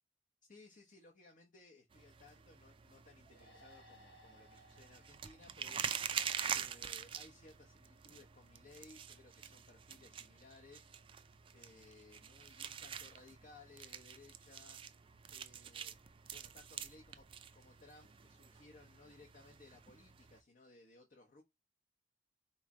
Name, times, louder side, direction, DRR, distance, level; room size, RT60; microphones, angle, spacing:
voice 1, 0.5-10.9 11.5-14.8 15.3-16.0 16.3-17.3 17.5-21.4, left 3 dB, 50° left, 0.8 m, -61 dB
sound 1, 1.9-20.4, right 8 dB, 30° right, 0.4 m, -46 dB
sound 2, 3.3-6.7, equal, 80° left, 1.4 m, -64 dB
4.1 x 3.2 x 3.6 m
head